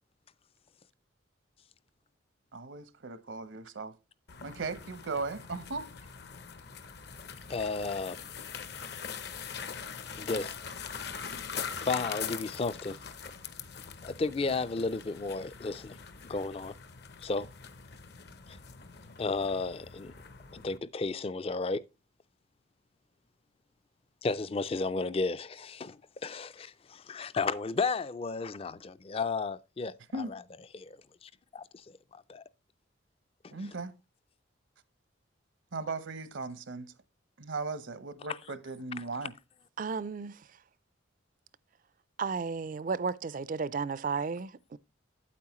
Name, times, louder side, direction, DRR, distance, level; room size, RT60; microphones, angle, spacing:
voice 1, 2.5-3.9 4.4-6.1 30.1-30.4 33.5-33.9 35.7-36.9 37.4-39.3, right 3 dB, 75° right, 0.8 m, -37 dB
sound 1, 4.3-20.8, left 6 dB, 55° left, 0.7 m, -42 dB
voice 2, 7.5-8.2 10.2-10.5 11.8-13.0 14.0-16.0 16.3-16.7 17.2-17.5 19.2-20.1 20.5-21.8 24.2-30.4 30.7-31.0 31.2-31.6 32.1-32.4 33.4-33.5, left 3 dB, 30° left, 0.3 m, -33 dB
voice 3, 39.8-40.3 42.2-44.8, right 5 dB, 40° right, 0.4 m, -33 dB
8.9 x 8.4 x 3.0 m
head